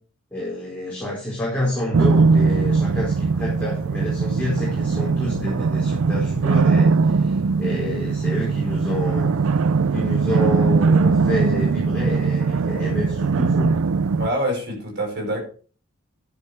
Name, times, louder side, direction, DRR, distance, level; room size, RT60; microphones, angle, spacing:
voice 1, 0.3-9.3 9.9-13.8, left 1 dB, 5° left, -6 dB, 4.4 m, -28 dB
sound 1, 1.9-14.3, right 4 dB, 65° right, 0.4 m, -20 dB
voice 2, 14.2-15.4, equal, 50° right, 1 dB, 5.9 m, -25 dB
11.0 x 10.5 x 3.5 m, 0.39 s
head